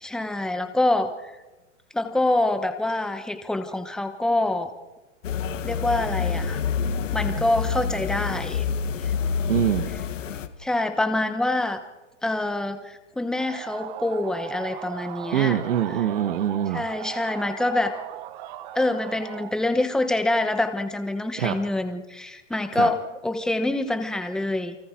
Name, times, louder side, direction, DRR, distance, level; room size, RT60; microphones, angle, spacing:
voice 1, 0.0-1.3 1.9-4.7 5.6-6.6 7.1-8.6 9.0-9.1 10.6-11.8 12.2-15.6 16.7-17.9 18.7-23.0 23.2-24.8, left 2 dB, ahead, 7 dB, 1.0 m, -26 dB
sound 1, 5.2-10.5, left 6 dB, 90° left, 1.8 m, -27 dB
voice 2, 9.5-9.9 15.3-16.8 21.4-21.6 22.7-22.9, right 10 dB, 85° right, 7 dB, 1.6 m, -24 dB
sound 2, 13.4-19.6, right 13 dB, 40° right, 1.1 m, -38 dB
29.5 x 24.0 x 4.6 m, 1.1 s
hypercardioid pair, 155°, 37 cm